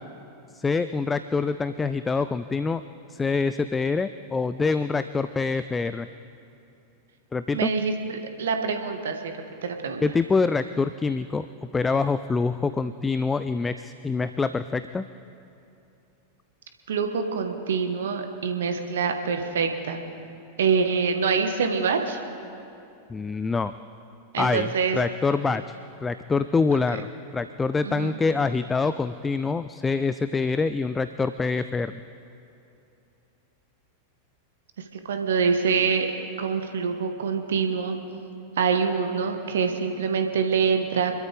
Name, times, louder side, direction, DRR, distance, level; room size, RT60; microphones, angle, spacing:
voice 1, 0.5-2.8 3.1-6.1 7.3-7.7 10.0-11.5 11.7-15.0 23.1-23.7 24.4-27.1 27.3-32.0, left 4 dB, 15° left, 12 dB, 0.4 m, -25 dB
voice 2, 7.5-9.3 9.6-10.0 16.9-20.0 20.6-22.2 24.3-25.0 27.8-28.2 35.1-36.1 36.4-38.0 38.6-41.1, right 5 dB, 65° right, 5 dB, 1.4 m, -25 dB
27.0 x 13.0 x 3.5 m, 2.8 s
figure-of-eight pair, 90°, 0 cm